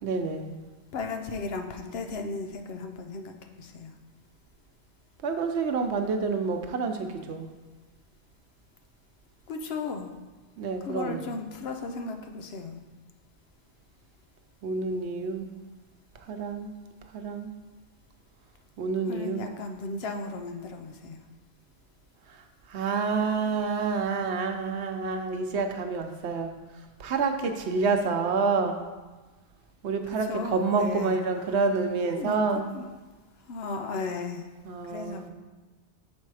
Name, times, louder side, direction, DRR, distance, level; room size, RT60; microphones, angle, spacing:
voice 1, 0.0-0.6 5.2-7.5 10.6-11.3 14.6-15.5 16.2-16.7 17.1-17.5 18.8-19.4 22.3-26.5 27.0-28.8 29.8-32.7 34.6-35.3, right 4 dB, 90° right, 5 dB, 1.0 m, -28 dB
voice 2, 0.9-3.9 9.5-10.1 10.9-12.8 19.1-21.2 30.3-31.2 32.2-32.4 32.7-32.9 33.5-34.4 34.9-35.3, left 3 dB, 70° left, 5 dB, 0.9 m, -35 dB
6.5 x 4.3 x 4.7 m, 1.3 s
omnidirectional pair, 1.1 m